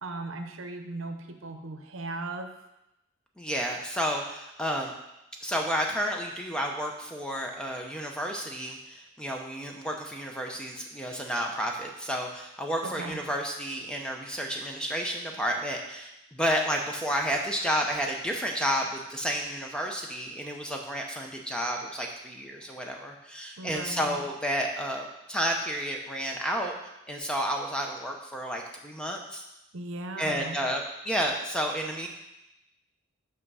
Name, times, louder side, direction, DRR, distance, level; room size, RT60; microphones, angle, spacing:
voice 1, 0.0-2.5 12.8-13.2 23.6-24.2 29.7-30.6, right 2 dB, 75° right, 6 dB, 0.7 m, -37 dB
voice 2, 3.4-4.9 5.4-29.4 30.2-32.1, equal, 5° left, 1 dB, 0.7 m, -31 dB
5.9 x 5.7 x 5.5 m, 0.90 s
head